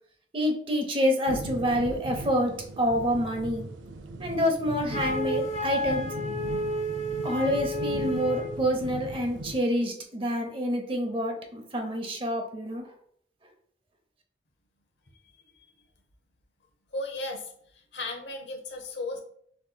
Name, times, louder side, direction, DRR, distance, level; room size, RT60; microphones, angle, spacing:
voice 1, 0.3-3.7 4.2-6.1 7.2-12.9, equal, 30° right, 3 dB, 0.7 m, -27 dB
sound 1, 1.3-9.6, right 2 dB, 85° right, 0.5 m, -38 dB
Wind instrument woodwind instrument, 4.9-8.6, equal, 35° left, 0.6 m, -31 dB
voice 2, 16.9-17.5 17.9-19.2, left 2 dB, 75° left, 5 dB, 0.9 m, -35 dB
6.9 x 3.0 x 2.2 m, 0.64 s
head